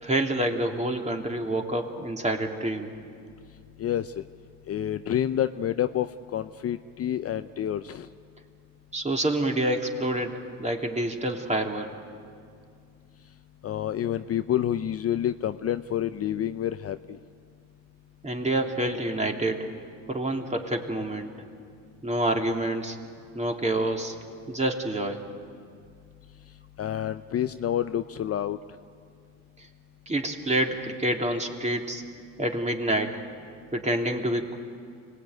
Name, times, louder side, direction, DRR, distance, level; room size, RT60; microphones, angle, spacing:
voice 1, 0.0-2.9 8.9-11.9 18.2-19.7 20.1-21.3 22.0-23.0 23.3-24.1 24.5-25.2 30.1-32.0 32.4-33.2 33.7-34.6, right 1 dB, 15° right, 2 dB, 2.9 m, -27 dB
voice 2, 3.8-4.2 4.7-8.1 13.6-17.2 26.8-28.6, left 10 dB, 40° left, 10 dB, 0.6 m, -28 dB
25.5 x 19.0 x 9.3 m, 2.3 s
supercardioid pair, 85°, 39 cm